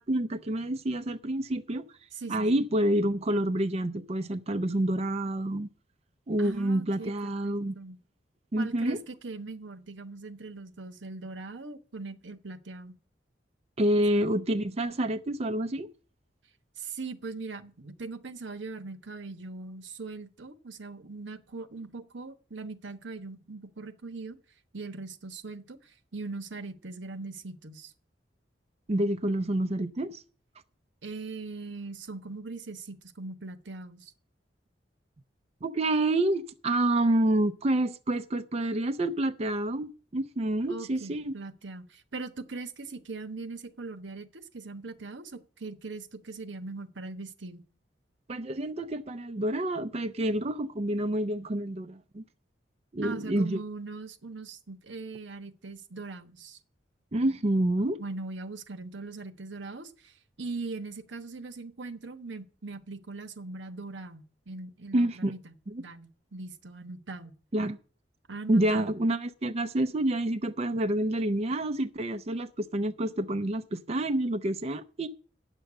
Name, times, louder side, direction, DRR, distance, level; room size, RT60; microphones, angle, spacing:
voice 1, 0.0-1.9 2.3-5.7 6.3-7.7 8.5-9.0 13.8-15.9 28.9-30.2 35.6-41.3 48.3-52.2 52.9-53.6 57.1-58.0 64.9-65.3 65.7-65.8 67.5-67.8 68.5-75.1, right 1 dB, 35° right, 0.5 m, -28 dB
voice 2, 2.1-2.6 6.4-8.0 8.6-12.9 16.8-24.4 24.7-27.9 31.0-34.1 40.7-47.6 53.0-56.6 58.0-60.1 60.4-65.5 65.8-67.3 68.3-68.9, right 3 dB, 90° right, 1.1 m, -40 dB
9.0 x 6.6 x 8.5 m
head